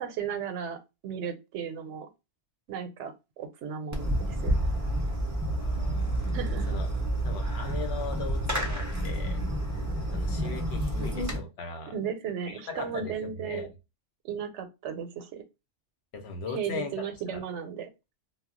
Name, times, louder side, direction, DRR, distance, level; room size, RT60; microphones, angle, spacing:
voice 1, 0.0-2.1 2.7-4.6 6.3-6.7 11.9-13.7 14.2-15.4 16.5-17.9, right 7 dB, 80° right, 8 dB, 0.9 m, -35 dB
Fireworks, 3.9-11.4, right 1 dB, 30° right, 0.3 m, -29 dB
voice 2, 5.6-6.2 6.7-6.9 7.2-9.4 9.7-9.8 10.1-11.9 12.5-13.1 13.4-13.7 16.1-17.4, left 4 dB, 65° left, 6 dB, 0.9 m, -39 dB
2.2 x 2.0 x 3.6 m, 0.26 s
omnidirectional pair, 1.2 m